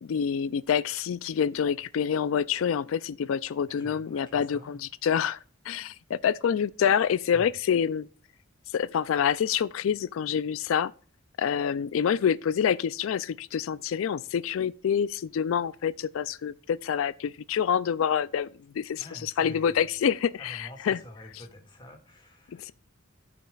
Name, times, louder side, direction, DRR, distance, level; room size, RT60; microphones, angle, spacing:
voice 1, 0.0-5.4 5.7-8.1 8.7-10.9 11.4-18.5 18.7-21.0 22.5-22.7, left 8 dB, 75° left, 0.3 m, -27 dB
voice 2, 3.7-4.8 7.3-7.5 19.0-20.0 20.4-22.7, equal, 20° left, 1.9 m, -47 dB
14.0 x 5.9 x 2.3 m
head